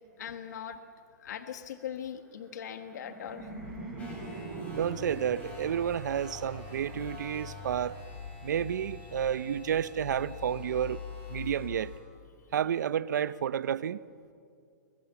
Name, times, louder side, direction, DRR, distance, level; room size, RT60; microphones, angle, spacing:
voice 1, 0.2-0.8 1.2-3.5, left 9 dB, 70° left, 1.5 m, -40 dB
Laughter, 2.5-7.5, right 3 dB, 5° right, 5.1 m, -43 dB
sound 1, 3.4-12.0, left 9 dB, 45° left, 1.8 m, -46 dB
sound 2, 4.0-12.0, left 1 dB, 15° left, 7.3 m, -48 dB
voice 2, 4.7-8.0 8.4-11.0 11.3-11.9 12.5-14.0, right 9 dB, 75° right, 0.7 m, -31 dB
29.5 x 22.0 x 7.1 m
hypercardioid pair, 165°, 10 cm